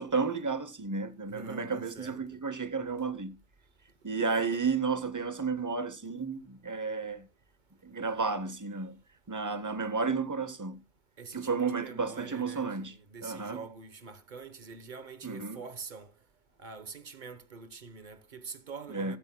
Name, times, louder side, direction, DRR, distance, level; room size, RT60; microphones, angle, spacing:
voice 1, 0.0-3.4 4.0-7.3 7.8-9.0 9.3-10.8 11.3-12.9 13.2-13.6 15.2-15.6 18.9-19.2, right 4 dB, 20° right, 0.7 m, -32 dB
voice 2, 1.3-2.4 4.3-4.5 11.2-16.1 16.6-19.2, right 5 dB, 45° right, 1.1 m, -45 dB
14.5 x 13.5 x 2.2 m
omnidirectional pair, 1.1 m